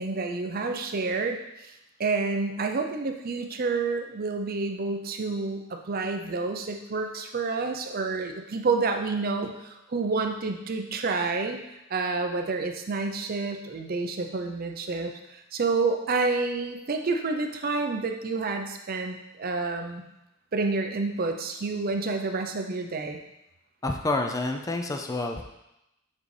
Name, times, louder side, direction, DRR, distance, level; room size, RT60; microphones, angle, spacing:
voice 1, 0.0-1.7 2.0-11.6 11.9-20.0 20.5-23.2, right 3 dB, 45° right, 5 dB, 0.6 m, -29 dB
voice 2, 23.8-25.4, left 2 dB, 15° left, 3 dB, 0.4 m, -28 dB
7.3 x 3.9 x 3.3 m, 0.89 s
head